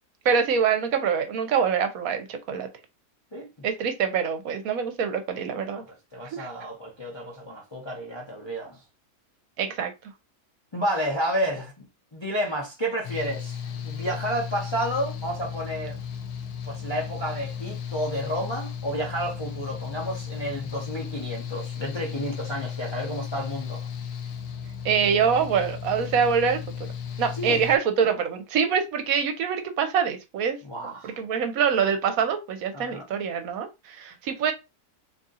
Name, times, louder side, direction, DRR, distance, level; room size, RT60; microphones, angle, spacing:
voice 1, 0.2-2.7 3.6-5.8 6.3-6.5 9.6-9.9 24.8-26.9 27.2-30.6 31.0-34.5, right 7 dB, 70° right, 1.0 m, -25 dB
voice 2, 3.3-3.7 5.7-8.8 10.7-11.9 12.1-16.0 16.6-23.9 25.0-25.3 27.3-27.6 30.6-31.2 32.7-33.1, equal, 30° left, 0.5 m, -31 dB
Mechanical fan, 13.0-27.8, left 7 dB, 80° left, 1.2 m, -35 dB
2.8 x 2.7 x 3.6 m
omnidirectional pair, 1.6 m